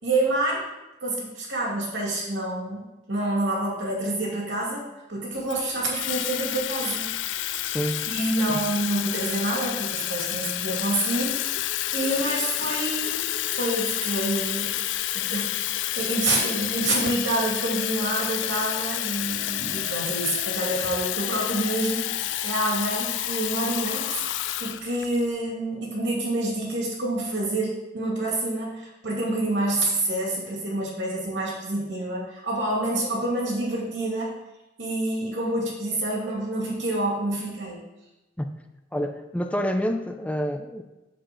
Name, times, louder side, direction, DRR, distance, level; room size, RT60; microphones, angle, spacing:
voice 1, 0.0-0.7 1.0-7.1 8.1-11.4 11.9-14.8 15.1-15.7 15.9-34.4 34.8-37.8, right 1 dB, 85° right, -4 dB, 2.6 m, -27 dB
Water tap faucet / Fill (with liquid), 5.5-25.2, left 13 dB, 75° left, 0.4 m, -29 dB
voice 2, 7.6-8.0 8.5-8.6 38.4-38.5 38.9-40.8, equal, 10° left, 6 dB, 0.4 m, -28 dB
8.7 x 7.2 x 3.1 m, 1.0 s
head